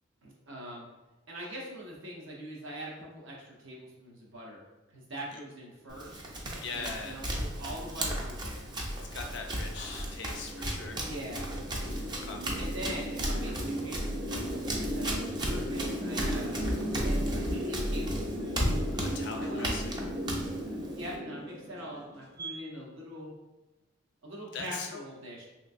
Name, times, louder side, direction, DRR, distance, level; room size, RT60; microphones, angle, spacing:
voice 1, 0.2-0.9 1.3-4.6 4.9-6.3 6.7-8.7 11.1-11.5 12.6-18.8 19.4-19.7 20.9-23.3 24.2-25.4, equal, 80° right, -3 dB, 1.0 m, -43 dB
Run, 5.9-21.2, equal, 20° right, 0.4 m, -35 dB
sound 1, 6.1-22.5, equal, 55° right, 1.0 m, -37 dB
voice 2, 6.6-7.3 9.1-11.1 12.2-12.4 18.9-20.0 24.5-25.0, left 4 dB, 60° left, 3 dB, 0.5 m, -40 dB
3.3 x 2.9 x 2.5 m, 1.1 s
head